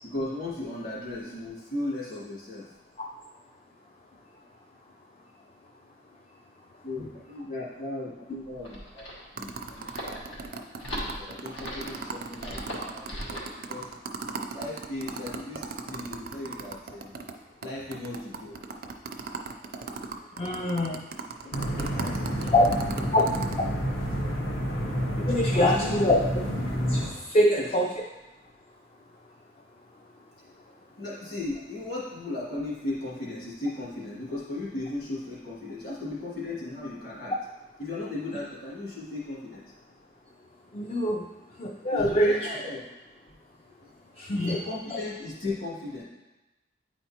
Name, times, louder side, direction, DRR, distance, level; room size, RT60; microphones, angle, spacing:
voice 1, 0.0-2.7 6.8-9.0 9.3-9.9 10.9-13.9 14.2-17.2 17.6-18.6 21.9-23.2 25.3-25.9 27.4-27.7 31.0-37.3 37.8-39.7 41.9-42.8 43.8-43.9 44.4-46.0, left 2 dB, 50° left, -7 dB, 2.2 m, -36 dB
sound 1, 8.4-13.6, equal, 90° left, 1.5 m, -38 dB
sound 2, 9.4-17.3 17.6-17.7 17.9-23.6, right 4 dB, 50° right, 0.4 m, -37 dB
voice 2, 20.4-21.0 21.4-21.9 22.5-22.6 23.1-23.2 25.2-26.2 26.9-27.9 40.7-41.3 41.6-42.4 44.2-44.6, left 1 dB, 30° left, 0 dB, 0.4 m, -24 dB
sound 3, 21.5-27.1, equal, 70° left, 1.0 m, -29 dB
9.1 x 4.4 x 2.9 m, 1.1 s
head